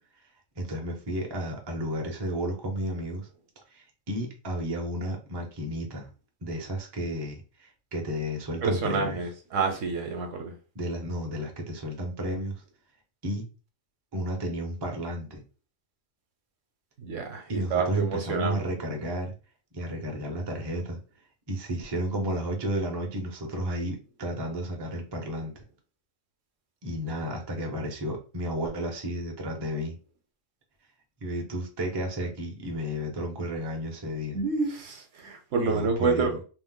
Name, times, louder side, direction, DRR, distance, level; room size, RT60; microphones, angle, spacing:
voice 1, 0.6-3.3 3.7-6.1 6.4-9.2 10.7-12.6 13.2-13.5 14.1-15.4 17.5-19.3 19.7-21.0 21.5-25.5 26.8-30.0 31.2-34.4 35.7-36.4, equal, 30° right, 0.5 m, -32 dB
voice 2, 8.6-10.5 17.0-18.6 34.3-36.4, right 4 dB, 65° right, 1.0 m, -28 dB
3.1 x 2.0 x 3.6 m
omnidirectional pair, 1.5 m